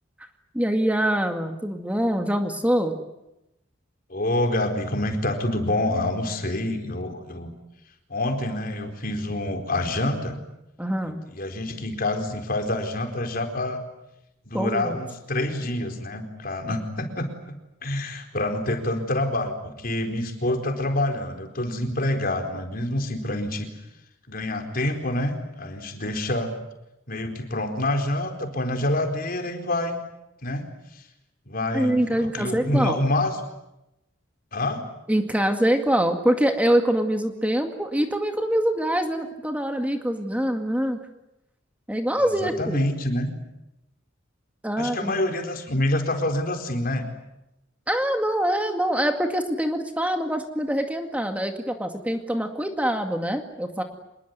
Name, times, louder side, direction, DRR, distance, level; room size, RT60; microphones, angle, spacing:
voice 1, 0.5-3.0 10.8-11.2 14.5-15.0 16.7-16.8 31.7-33.0 35.1-41.0 41.9-42.8 44.6-45.1 47.9-53.8, right 1 dB, 5° right, 5 dB, 2.1 m, -24 dB
voice 2, 4.1-7.5 8.1-10.4 11.3-13.8 14.5-17.3 17.8-23.7 24.3-26.5 27.1-30.0 30.4-30.7 30.9-31.0 31.5-33.4 34.5-34.9 42.2-43.3 44.8-47.1, left 1 dB, 50° left, 6 dB, 4.3 m, -27 dB
26.5 x 21.5 x 9.5 m, 0.90 s
head